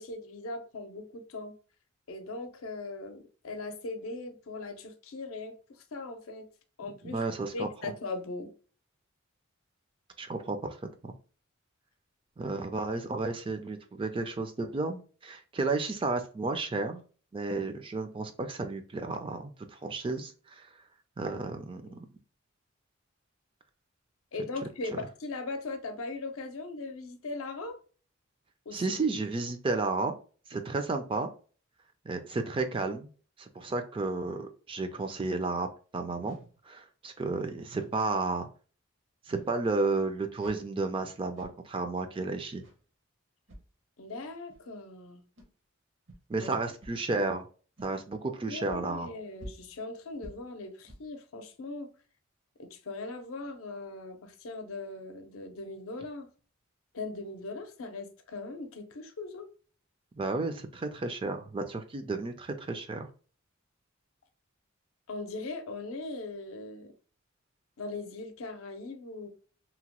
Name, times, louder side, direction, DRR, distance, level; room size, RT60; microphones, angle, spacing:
voice 1, 0.0-1.5 2.1-6.5 6.8-7.3 7.5-8.5 24.3-27.8 28.7-28.8 44.0-45.2 46.4-46.5 48.5-51.9 52.6-56.3 56.9-59.5 65.1-66.9 67.8-69.3, left 3 dB, 85° left, 0.6 m, -39 dB
voice 2, 7.0-7.9 10.2-10.8 11.0-11.1 12.4-17.0 17.3-20.7 21.2-22.0 24.9-25.0 28.7-30.1 30.5-31.3 32.1-33.1 33.4-35.7 35.9-36.4 36.6-38.5 39.3-42.6 46.3-47.4 47.8-49.1 60.2-63.1, right 3 dB, 25° right, 0.3 m, -32 dB
sound 1, 36.2-36.6 37.7-38.1 39.3-39.6 40.4-40.7 41.4-41.6 42.6-42.8 43.5-43.6 44.5-44.6 45.4-45.5 46.1-46.2 46.8-47.0 47.8-47.9 48.7-48.8 49.4-49.8 50.2-50.5 50.9-51.1, right 1 dB, 60° right, 0.7 m, -48 dB
2.8 x 2.1 x 2.9 m
head